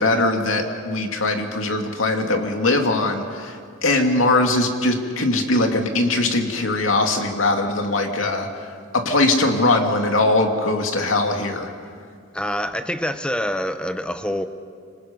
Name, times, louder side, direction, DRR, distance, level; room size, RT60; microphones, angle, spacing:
voice 1, 0.0-11.7, left 2 dB, 85° left, 3 dB, 2.4 m, -21 dB
voice 2, 12.3-14.5, equal, 5° left, 9 dB, 0.9 m, -26 dB
27.0 x 25.5 x 5.3 m, 2.2 s
head